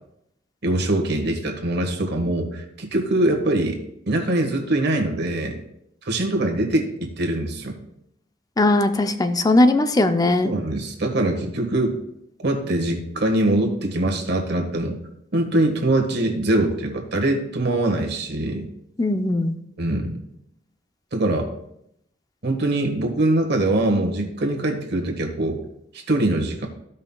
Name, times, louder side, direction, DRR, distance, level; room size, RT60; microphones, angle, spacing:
voice 1, 0.6-3.8 4.1-5.6 6.0-7.8 10.4-12.0 12.4-15.0 15.3-18.7 19.8-20.2 21.1-21.5 22.4-25.6 25.9-26.7, right 1 dB, 60° right, 2 dB, 1.5 m, -23 dB
voice 2, 8.6-10.5 19.0-19.5, left 2 dB, 20° left, 9 dB, 0.5 m, -19 dB
15.0 x 5.6 x 2.3 m, 0.78 s
head